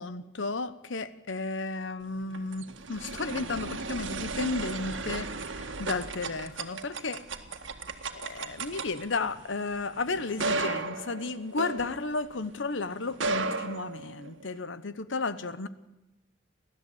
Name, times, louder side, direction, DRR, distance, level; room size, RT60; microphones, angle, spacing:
voice 1, 0.0-7.3 8.2-15.7, left 3 dB, 75° left, 14 dB, 1.0 m, -33 dB
sound 1, 2.1-12.5 13.0-14.6, right 3 dB, 80° right, 1.8 m, -35 dB
29.5 x 13.0 x 8.7 m, 0.96 s
head